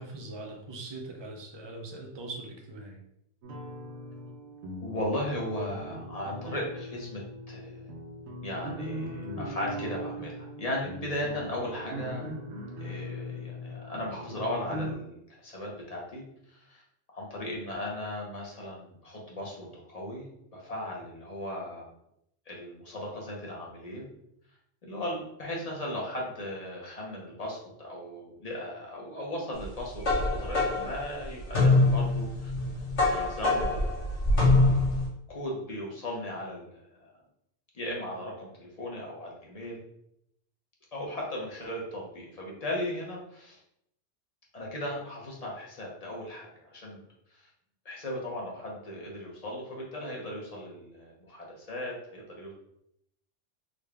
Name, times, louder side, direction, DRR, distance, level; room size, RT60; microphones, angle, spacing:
voice 1, 0.0-3.0, right 2 dB, 35° right, 1 dB, 0.4 m, -41 dB
sound 1, 3.4-14.9, equal, 75° right, 0.9 m, -40 dB
voice 2, 4.8-7.9 8.4-12.3 12.8-16.8 17.1-21.9 22.5-24.1 24.8-32.5 33.1-33.9 35.3-37.1 37.7-39.8 40.9-43.6 44.5-47.0 47.3-47.5 47.8-52.5, left 1 dB, 35° left, -3 dB, 0.8 m, -37 dB
sound 2, 29.6-35.1, left 2 dB, 80° left, 1.6 m, -24 dB
3.8 x 2.3 x 3.3 m, 0.77 s
omnidirectional pair, 1.2 m